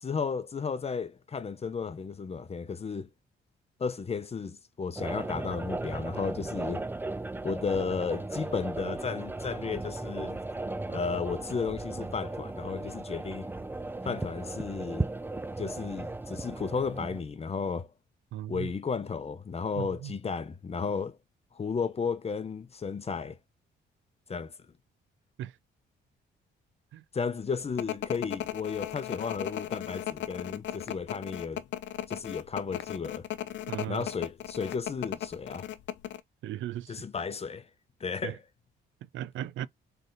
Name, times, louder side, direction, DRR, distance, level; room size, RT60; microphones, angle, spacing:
voice 1, 0.0-3.1 3.8-6.9 7.4-10.4 10.9-13.5 14.0-15.1 15.6-17.9 18.5-21.2 21.5-23.4 24.3-24.5 27.1-31.6 32.1-33.3 33.9-35.7 36.9-37.7 38.0-38.4, left 5 dB, 30° left, 0.8 m, -33 dB
sound 1, 5.0-17.2, right 2 dB, 10° right, 0.5 m, -36 dB
voice 2, 18.3-18.7 19.8-20.1 25.4-25.6 26.9-27.0 33.7-34.1 36.4-37.0 38.2-38.4 39.1-39.7, right 12 dB, 75° right, 0.5 m, -37 dB
sound 2, 27.8-36.2, left 12 dB, 65° left, 0.7 m, -36 dB
4.0 x 3.4 x 3.9 m
cardioid pair, 90°, 20 cm